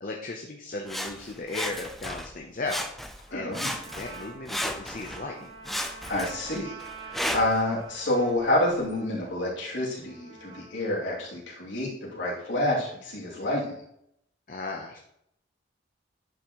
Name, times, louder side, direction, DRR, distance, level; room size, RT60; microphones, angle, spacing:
voice 1, 0.0-2.8 3.3-3.6 3.9-5.5 14.5-15.0, left 3 dB, 40° left, 1 dB, 0.8 m, -36 dB
Sawing, 0.9-2.3 2.6-3.3 3.5-5.2 5.6-7.6 8.3-8.4, equal, ahead, 0.4 m, -34 dB
voice 2, 3.3-3.7 6.1-6.7 7.0-13.8, left 1 dB, 70° left, -5 dB, 2.9 m, -28 dB
Trumpet, 3.3-11.3, right 4 dB, 25° right, 2.3 m, -47 dB
10.5 x 6.2 x 3.1 m, 0.75 s
head